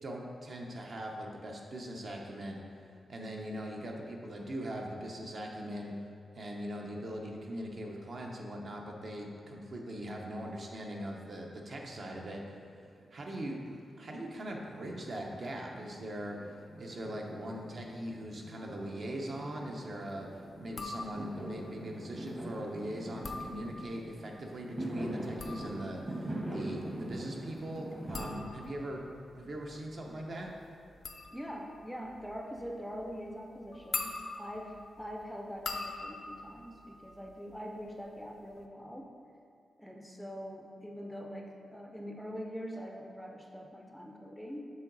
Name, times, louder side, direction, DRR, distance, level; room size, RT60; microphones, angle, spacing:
voice 1, 0.0-2.6 3.1-5.9 6.3-12.6 13.1-20.3 20.6-29.1 29.3-30.5, equal, 50° right, 0 dB, 0.8 m, -41 dB
Fireworks, 11.8-12.8 13.0-28.3, right 1 dB, 25° right, 1.0 m, -43 dB
sound 1, 20.7-21.5 23.0-24.1 25.1-37.8 38.1-38.6, left 4 dB, 60° left, 0.5 m, -44 dB
voice 2, 31.3-39.1 39.8-44.7, equal, ahead, 1 dB, 0.5 m, -43 dB
7.2 x 3.9 x 3.9 m, 2.5 s
wide cardioid pair, 115°, 0 cm